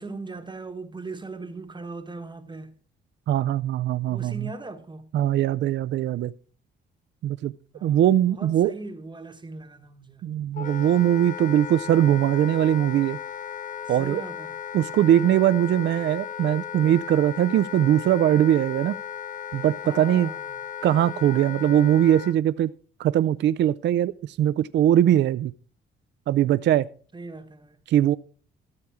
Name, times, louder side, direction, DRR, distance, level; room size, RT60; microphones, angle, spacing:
voice 1, 0.0-2.7 4.1-5.0 7.7-10.2 13.8-14.6 19.8-20.6 27.1-27.8, right 3 dB, 20° right, 1.1 m, -39 dB
voice 2, 3.3-4.5 5.1-6.3 7.2-7.5 7.8-8.7 10.2-13.2 13.9-14.2 14.7-19.0 19.5-20.3 20.8-22.7 23.0-25.5 26.3-26.9 27.9-28.2, right 11 dB, 65° right, 0.4 m, -21 dB
Wind instrument woodwind instrument, 10.5-22.4, left 8 dB, 40° left, 0.6 m, -36 dB
13.5 x 6.9 x 4.8 m
cardioid pair, 90°, 20 cm